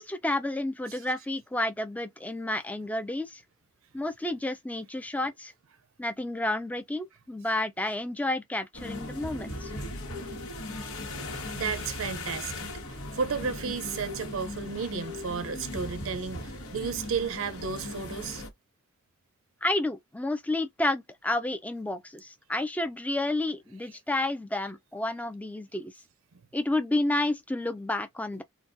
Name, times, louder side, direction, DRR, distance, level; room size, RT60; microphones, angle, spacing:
voice 1, 0.0-3.4 3.9-5.5 6.0-9.7 19.6-25.9 26.5-28.4, left 2 dB, 5° left, 0.4 m, -30 dB
sound 1, 8.7-18.5, left 1 dB, 75° left, 1.2 m, -38 dB
voice 2, 9.5-9.9 11.3-18.4, right 5 dB, 75° right, 0.5 m, -33 dB
3.9 x 2.2 x 2.6 m
head